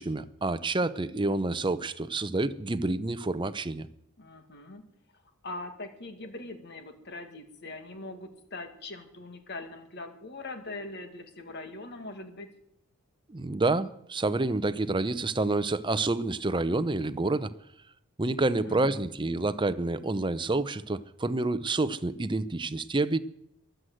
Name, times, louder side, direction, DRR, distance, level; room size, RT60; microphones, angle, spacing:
voice 1, 0.0-3.9 13.3-17.5 18.2-23.2, right 2 dB, 20° right, 13 dB, 0.7 m, -28 dB
voice 2, 4.2-4.8 5.4-12.5 18.4-19.0, left 2 dB, 50° left, 7 dB, 2.0 m, -42 dB
22.5 x 8.0 x 7.8 m, 0.77 s
head